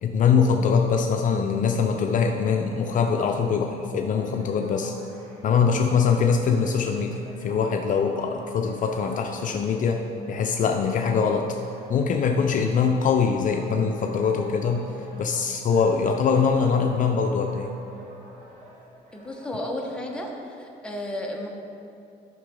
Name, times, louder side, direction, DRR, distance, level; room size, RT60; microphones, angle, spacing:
voice 1, 0.0-5.0 5.4-11.6 11.9-14.9 15.2-17.7, left 6 dB, 50° left, 3 dB, 0.5 m, -23 dB
sound 1, 2.2-19.5, right 1 dB, 45° right, 2.1 m, -49 dB
voice 2, 19.1-20.3 20.6-21.5, left 1 dB, 5° left, -1 dB, 1.1 m, -32 dB
10.5 x 5.9 x 3.8 m, 2.7 s
cardioid pair, 110°, 17 cm